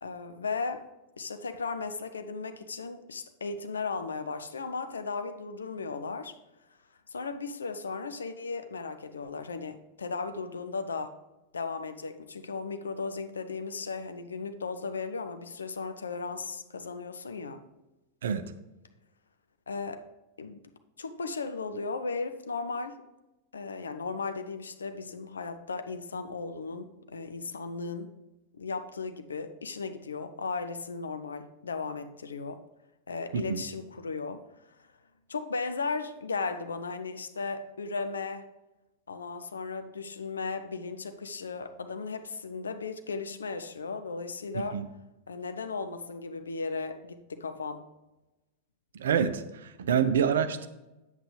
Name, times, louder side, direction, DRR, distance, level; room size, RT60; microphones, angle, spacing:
voice 1, 0.0-0.9 1.2-6.3 7.1-11.1 11.5-17.6 19.7-20.1 20.4-20.7 21.0-23.0 23.5-28.1 28.6-32.6 33.1-34.4 35.3-38.5 39.1-44.8 45.3-47.8, left 4 dB, 70° left, 8 dB, 0.6 m, -36 dB
voice 2, 33.3-33.6 44.5-44.8 48.9-50.7, right 7 dB, 65° right, 12 dB, 0.5 m, -27 dB
9.1 x 7.8 x 3.3 m, 1.0 s
figure-of-eight pair, 90°, 0 cm